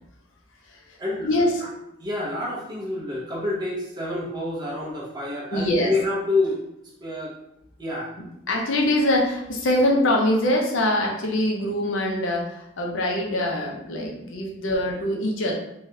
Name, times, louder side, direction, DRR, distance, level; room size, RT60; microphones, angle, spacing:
voice 1, 1.0-1.3 2.0-7.3 7.8-8.1, left 2 dB, 20° right, -5 dB, 0.7 m, -28 dB
voice 2, 5.5-5.9 8.5-15.5, left 1 dB, 75° left, 0 dB, 0.6 m, -23 dB
3.2 x 2.3 x 2.7 m, 0.81 s
head